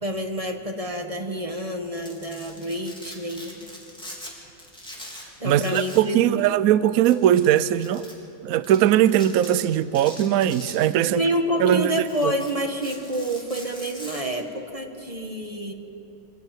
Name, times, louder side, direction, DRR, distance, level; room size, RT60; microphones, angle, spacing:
voice 1, 0.0-3.7 5.4-6.6 11.0-15.7, equal, 20° right, 1.3 m, -28 dB
Domestic sounds home sounds, 1.8-4.3 4.6-6.1 6.4-6.5 7.1-8.1 8.6-8.8 9.1-9.6 10.0-11.2 11.6-14.2, equal, ahead, 3.4 m, -42 dB
voice 2, 5.4-8.0 8.4-11.2 11.6-11.9 12.2-12.3, right 11 dB, 70° right, 0.8 m, -20 dB
24.0 x 15.5 x 9.0 m
omnidirectional pair, 2.1 m